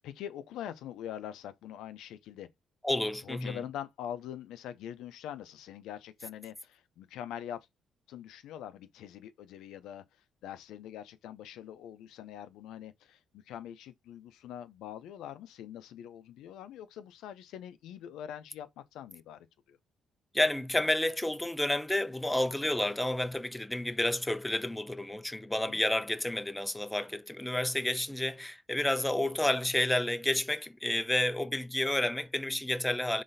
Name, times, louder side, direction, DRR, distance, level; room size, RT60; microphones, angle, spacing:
voice 1, 0.0-2.5 3.2-7.7 8.1-10.0 10.4-19.8 25.7-25.8, left 10 dB, 85° left, 0.4 m, -44 dB
voice 2, 2.8-3.6 20.3-33.2, left 1 dB, 10° left, 0.3 m, -30 dB
4.0 x 3.1 x 2.5 m
cardioid pair, 90°, 0 cm